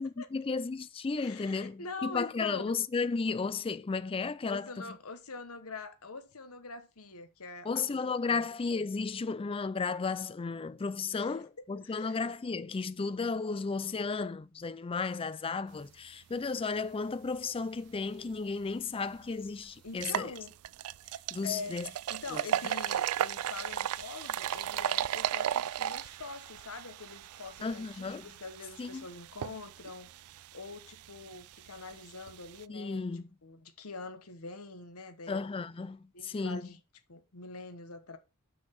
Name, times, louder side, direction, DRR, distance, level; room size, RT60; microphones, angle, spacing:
voice 1, 0.0-4.9 7.7-20.3 21.3-21.9 22.3-22.4 27.6-28.3 28.8-29.0 32.7-33.3 35.3-36.6, left 4 dB, 25° left, 0.4 m, -34 dB
voice 2, 1.2-2.7 4.5-8.5 11.1-12.2 19.8-20.5 21.4-30.1 30.5-33.1 33.4-35.4 36.1-36.8 37.1-38.2, left 4 dB, 80° left, 1.2 m, -44 dB
sound 1, 18.6-18.7 19.2-19.3 19.9-32.6, right 10 dB, 80° right, 0.3 m, -36 dB
6.2 x 5.8 x 5.9 m
head